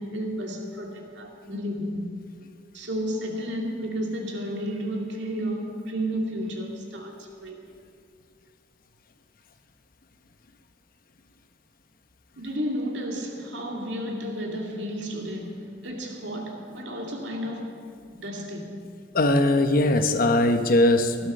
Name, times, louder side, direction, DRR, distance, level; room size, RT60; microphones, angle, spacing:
voice 1, 0.0-2.2 2.7-7.6 12.4-18.9, equal, 70° right, 2.3 m, -32 dB
voice 2, 19.1-21.3, left 1 dB, 50° left, 1.0 m, -20 dB
16.0 x 11.5 x 6.7 m
head